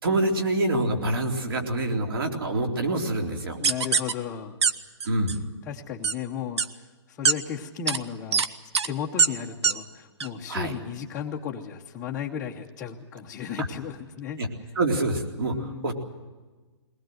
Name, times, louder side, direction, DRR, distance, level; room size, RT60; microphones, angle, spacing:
voice 1, 0.0-3.6 5.0-5.4 10.5-10.7 14.4-14.5 14.8-15.9, right 2 dB, 55° right, 3 dB, 3.8 m, -26 dB
voice 2, 3.6-4.6 5.7-8.4 8.8-14.4 15.5-15.9, left 8 dB, 10° left, -3 dB, 0.8 m, -35 dB
sound 1, 3.6-4.1 4.6-4.7 5.0-5.4 6.0-6.1 6.6-6.7 7.3-7.4 7.9-8.0 8.3-8.5 8.7-8.9 9.2-9.3 9.6-9.7 10.2-10.3, right 5 dB, 70° right, 1.2 m, -21 dB
22.0 x 19.5 x 7.8 m, 1.3 s
hypercardioid pair, 175°, 15 cm